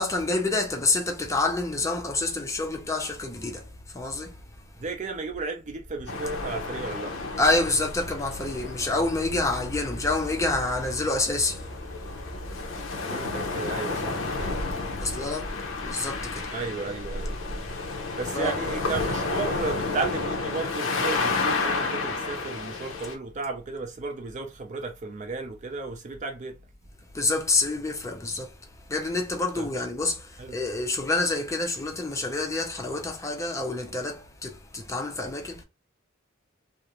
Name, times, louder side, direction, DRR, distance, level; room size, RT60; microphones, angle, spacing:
voice 1, 0.0-4.3 7.4-12.4 15.0-15.6 15.9-16.5 18.3-18.5 27.1-28.6 28.9-35.6, left 2 dB, 15° left, 0.4 m, -28 dB
voice 2, 4.8-7.1 13.0-14.7 15.0-15.1 16.5-17.4 18.1-26.6 29.5-29.7 30.4-30.6, right 4 dB, 40° right, 0.5 m, -34 dB
sound 1, 6.1-23.2, left 3 dB, 80° left, 0.6 m, -31 dB
2.4 x 2.0 x 2.9 m
head